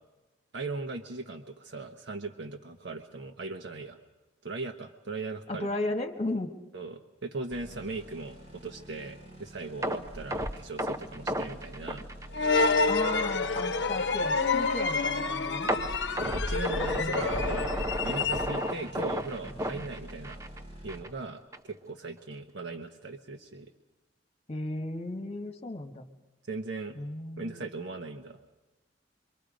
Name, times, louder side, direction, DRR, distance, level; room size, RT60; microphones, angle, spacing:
voice 1, 0.5-4.0 4.4-5.7 6.7-12.0 16.2-17.8 18.0-20.4 20.8-23.7 26.5-27.0 27.4-28.4, right 3 dB, 75° right, 4 dB, 1.0 m, -39 dB
voice 2, 5.5-6.5 12.9-15.7 17.0-17.2 24.5-26.0 26.9-27.6, left 2 dB, 35° left, 5 dB, 1.5 m, -35 dB
sound 1, 7.5-21.0, equal, 35° right, 5.0 m, -48 dB
sound 2, 9.8-12.9 13.2-13.3 13.8-13.9 15.7-20.6 20.9-21.1 21.5-21.6, equal, 20° right, 0.8 m, -33 dB
sound 3, 12.3-18.8, left 4 dB, 70° left, 0.8 m, -28 dB
26.0 x 24.0 x 5.1 m, 1.1 s
head